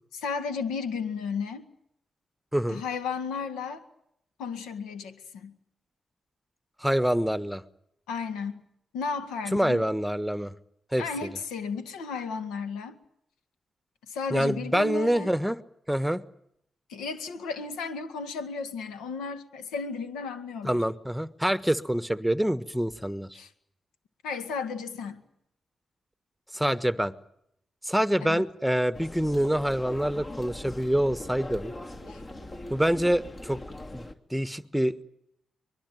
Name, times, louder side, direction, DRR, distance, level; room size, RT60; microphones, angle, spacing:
voice 1, 0.1-1.6 2.7-3.8 4.4-5.6 8.1-8.7 8.9-9.8 11.0-13.0 14.1-15.3 16.9-20.8 23.3-23.5 24.2-25.2 28.2-28.4 32.1-32.2, left 5 dB, 85° left, 9 dB, 2.0 m, -34 dB
voice 2, 6.8-7.6 9.5-10.5 10.9-11.0 14.3-15.6 15.9-16.2 20.6-23.3 26.5-27.1 27.8-31.7 32.7-33.6 33.9-35.0, equal, ahead, 13 dB, 1.3 m, -26 dB
sound 1, 28.9-34.1, left 1 dB, 40° left, 2.7 m, -41 dB
24.0 x 21.5 x 9.3 m, 0.75 s
hypercardioid pair, 40°, 0 cm